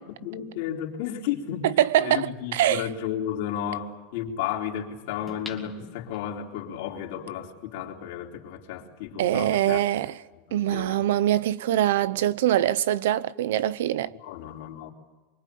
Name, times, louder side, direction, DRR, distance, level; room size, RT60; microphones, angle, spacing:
voice 1, 0.1-1.7 2.0-9.8 10.7-11.0 14.2-14.9, left 9 dB, 60° left, 4.0 m, -33 dB
voice 2, 1.6-2.9 9.2-10.2 10.5-14.1, right 12 dB, 85° right, 0.9 m, -23 dB
sound 1, 5.3-6.6 7.1-7.2, left 4 dB, 10° left, 2.3 m, -43 dB
25.0 x 23.5 x 8.6 m
supercardioid pair, 170°, 0 cm